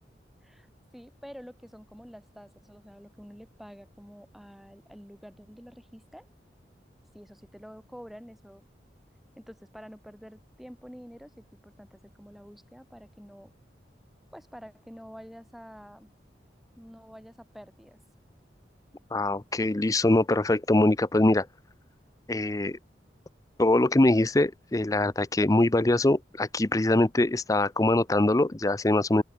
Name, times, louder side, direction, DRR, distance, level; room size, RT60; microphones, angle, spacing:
voice 1, 0.9-6.3 7.1-8.7 9.4-13.5 14.3-16.1 16.8-18.0, equal, ahead, 5.7 m, -48 dB
voice 2, 19.1-21.5 22.3-22.8 23.6-29.2, left 2 dB, 20° left, 0.5 m, -23 dB
open air
head